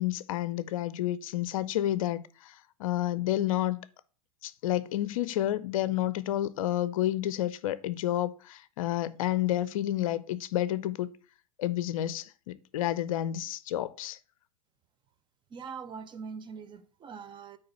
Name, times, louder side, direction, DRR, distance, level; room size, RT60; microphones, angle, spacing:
voice 1, 0.0-3.8 4.4-11.1 11.6-14.2, left 13 dB, 60° left, 0.5 m, -30 dB
voice 2, 15.5-17.6, right 6 dB, 25° right, 0.8 m, -42 dB
8.6 x 3.3 x 5.6 m
hypercardioid pair, 105°, 19 cm